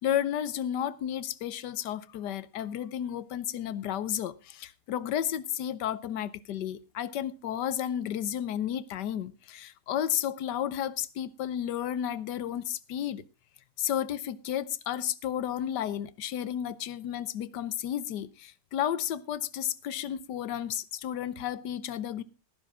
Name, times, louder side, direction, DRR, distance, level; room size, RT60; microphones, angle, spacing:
voice 1, 0.0-13.2 13.8-22.2, left 10 dB, 90° left, 1.4 m, -32 dB
18.0 x 10.5 x 3.6 m
omnidirectional pair, 1.8 m